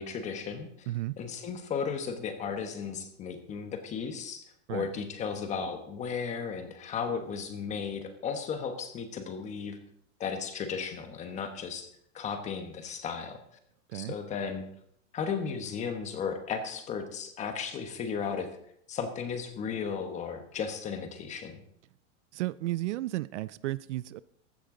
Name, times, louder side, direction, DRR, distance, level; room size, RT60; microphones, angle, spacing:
voice 1, 0.0-0.9 1.2-4.4 4.7-9.8 10.2-11.9 12.1-13.4 13.9-14.6 15.1-18.5 18.9-21.6, left 6 dB, 20° left, 1.2 m, -35 dB
voice 2, 0.9-1.2 4.7-4.9 13.9-14.1 22.3-24.2, right 16 dB, 65° right, 0.5 m, -33 dB
15.0 x 12.5 x 3.8 m
supercardioid pair, 165°, 39 cm